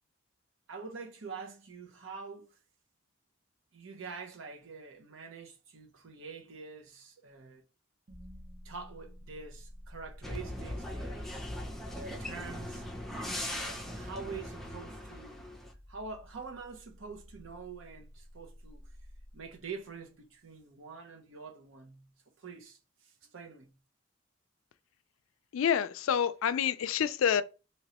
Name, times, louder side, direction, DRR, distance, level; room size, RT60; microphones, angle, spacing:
voice 1, 0.7-2.6 3.7-7.6 8.6-11.5 12.0-12.9 13.4-15.5 15.9-18.9 19.3-22.1 22.4-23.8, right 4 dB, 75° right, 0.7 m, -46 dB
sound 1, 8.1-20.2, equal, 35° right, 0.7 m, -52 dB
sound 2, 10.2-15.7, left 1 dB, ahead, 0.5 m, -40 dB
voice 2, 25.5-27.4, left 8 dB, 85° left, 0.3 m, -28 dB
3.1 x 2.9 x 2.8 m
head